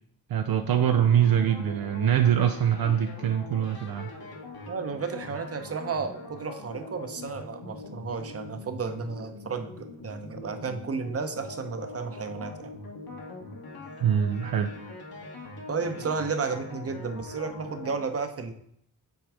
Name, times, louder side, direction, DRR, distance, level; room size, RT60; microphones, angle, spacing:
voice 1, 0.3-4.1 14.0-14.7, right 9 dB, 65° right, 6 dB, 0.6 m, -23 dB
sound 1, 0.6-18.0, left 2 dB, 65° left, 1.6 m, -42 dB
voice 2, 4.7-12.7 15.7-18.5, right 5 dB, 35° right, 8 dB, 0.8 m, -33 dB
6.2 x 3.9 x 4.8 m, 0.69 s
cardioid pair, 75°, 39 cm